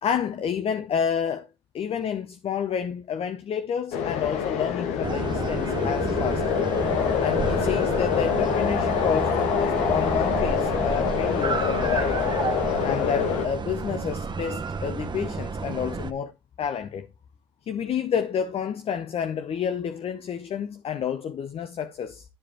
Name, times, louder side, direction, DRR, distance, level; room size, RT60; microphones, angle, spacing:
voice 1, 0.0-1.5 1.7-6.6 7.2-12.2 12.8-16.3 16.6-17.1 17.7-22.2, left 7 dB, 60° left, 0.8 m, -29 dB
sound 1, 3.9-13.5, left 7 dB, 80° left, 1.2 m, -25 dB
sound 2, 5.0-16.1, right 5 dB, 40° right, 1.0 m, -31 dB
12.5 x 5.0 x 4.3 m
hypercardioid pair, 45°, 11 cm